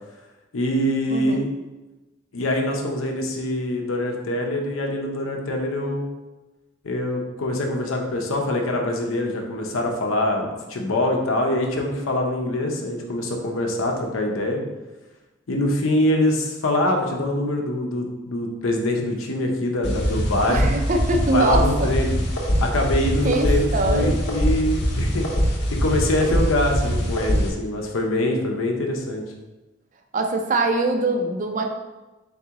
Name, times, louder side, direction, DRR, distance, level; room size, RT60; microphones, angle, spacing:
voice 1, 0.5-1.5 2.3-6.1 6.8-14.6 15.5-20.7 21.3-22.1 22.6-25.3 25.7-29.2, left 1 dB, 90° left, 2 dB, 0.7 m, -24 dB
voice 2, 1.1-1.4 20.5-21.9 23.2-24.2 30.1-31.7, right 2 dB, 40° right, 4 dB, 0.4 m, -23 dB
sound 1, 19.8-27.5, equal, 55° left, 0.7 m, -23 dB
4.0 x 3.6 x 2.9 m, 1.1 s
head